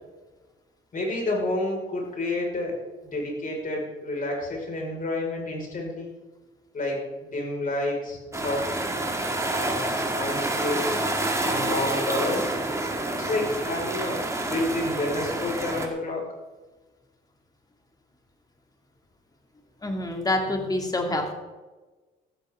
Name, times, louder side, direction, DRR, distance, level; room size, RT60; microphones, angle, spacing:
voice 1, 0.9-6.1 6.7-8.7 9.5-10.9 11.4-12.5 13.1-14.2 14.5-16.3, left 2 dB, 45° left, 0 dB, 5.2 m, -29 dB
sound 1, 8.3-15.9, right 2 dB, 15° right, 2.2 m, -28 dB
voice 2, 19.8-21.3, left 1 dB, 20° left, 3 dB, 2.6 m, -26 dB
14.5 x 12.5 x 3.7 m, 1.2 s
cardioid pair, 90°, 20 cm